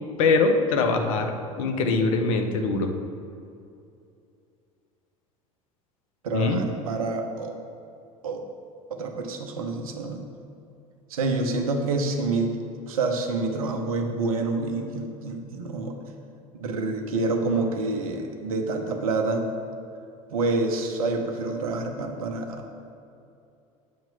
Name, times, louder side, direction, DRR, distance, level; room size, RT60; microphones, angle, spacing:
voice 1, 0.2-2.9 6.3-6.6, left 3 dB, 70° left, 5 dB, 0.7 m, -23 dB
voice 2, 6.2-7.5 8.2-8.4 8.9-10.3 11.1-12.6 12.9-15.9 16.5-19.4 20.3-22.6, right 3 dB, 75° right, 4 dB, 0.7 m, -27 dB
7.4 x 3.0 x 5.6 m, 2.6 s
hypercardioid pair, 75°, 18 cm